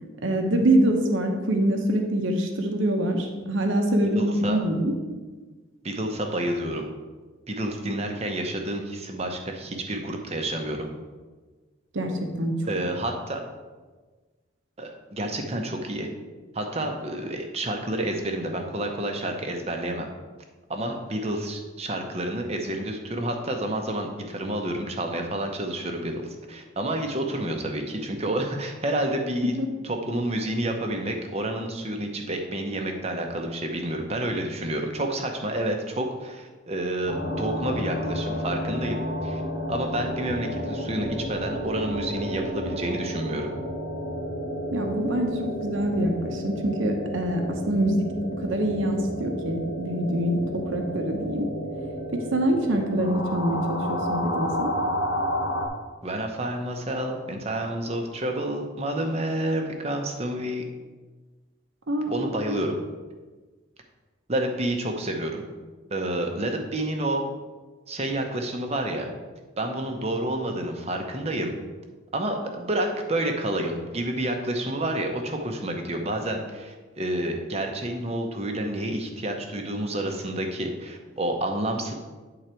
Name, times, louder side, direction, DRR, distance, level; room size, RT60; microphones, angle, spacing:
voice 1, 0.2-4.9 11.9-12.5 29.4-29.7 44.7-48.1 48.4-51.5 52.1-54.7 61.9-62.3, right 1 dB, 65° right, 3 dB, 0.9 m, -25 dB
voice 2, 4.1-4.6 5.8-6.9 7.5-10.9 12.6-13.4 14.8-16.1 16.5-20.1 20.7-29.5 29.8-39.4 39.7-43.5 56.0-60.6 62.1-62.8 64.3-65.4 65.9-67.2 67.9-69.1 69.6-71.5 72.1-81.9, right 1 dB, 30° right, 3 dB, 0.7 m, -29 dB
sound 1, 37.1-55.7, equal, 70° left, 1.1 m, -31 dB
9.0 x 3.9 x 4.4 m, 1.3 s
head